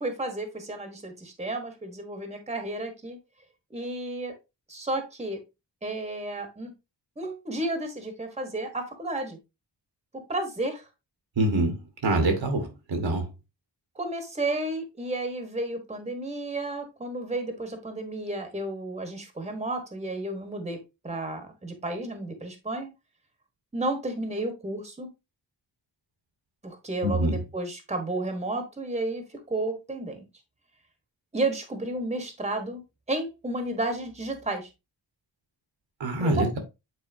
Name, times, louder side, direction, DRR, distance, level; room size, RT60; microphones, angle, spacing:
voice 1, 0.0-3.2 3.7-4.3 4.7-5.4 5.8-6.7 7.2-9.4 10.3-10.8 13.9-20.8 21.0-22.9 23.7-25.1 26.6-30.2 31.3-32.8 33.1-34.7 36.2-36.5, right 2 dB, 15° right, 1.3 m, -32 dB
voice 2, 11.4-11.8 12.0-13.2 27.0-27.4 36.0-36.6, right 1 dB, 80° right, 1.7 m, -25 dB
8.3 x 4.2 x 2.7 m
wide cardioid pair, 135°, 44 cm